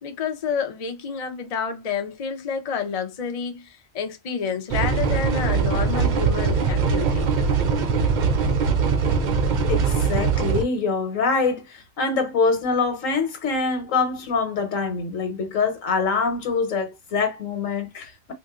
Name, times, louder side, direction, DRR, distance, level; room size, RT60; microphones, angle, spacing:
voice 1, 0.0-7.3, left 6 dB, 40° left, 0.6 m, -29 dB
sound 1, 4.7-10.6, right 5 dB, 55° right, 0.5 m, -21 dB
voice 2, 9.7-18.3, left 4 dB, 80° left, 1.4 m, -24 dB
3.6 x 2.6 x 2.3 m
omnidirectional pair, 1.3 m